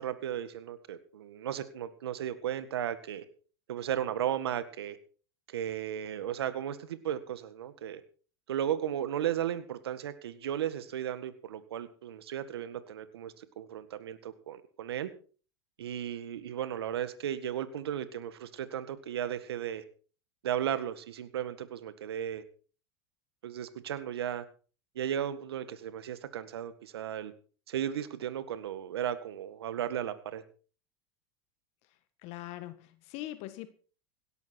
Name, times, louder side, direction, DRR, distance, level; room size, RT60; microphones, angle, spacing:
voice 1, 0.0-3.2 3.7-5.0 5.5-8.0 8.5-15.1 15.8-19.8 20.4-22.4 23.4-24.4 24.9-27.3 27.7-30.4, right 10 dB, 85° right, 13 dB, 1.8 m, -35 dB
voice 2, 32.2-33.7, left 15 dB, 55° left, 13 dB, 1.7 m, -41 dB
17.5 x 12.0 x 4.6 m, 0.39 s
hypercardioid pair, 95°, 13 cm